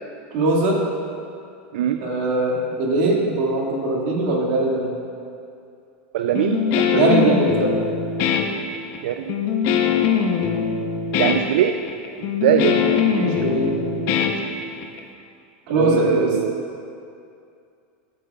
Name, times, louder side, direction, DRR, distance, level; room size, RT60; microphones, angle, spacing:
voice 1, 0.3-0.8 2.0-4.9 6.9-7.8 12.6-12.9 13.2-14.2 15.7-16.4, right 2 dB, 55° right, -2 dB, 2.0 m, -21 dB
voice 2, 6.1-7.3 9.0-9.4 11.2-11.8 12.4-13.3 15.7-16.7, right 10 dB, 75° right, 7 dB, 0.4 m, -22 dB
Guitar, 6.4-15.0, left 7 dB, 45° left, 0.7 m, -22 dB
14.5 x 8.2 x 2.3 m, 2.5 s
supercardioid pair, 155°, 6 cm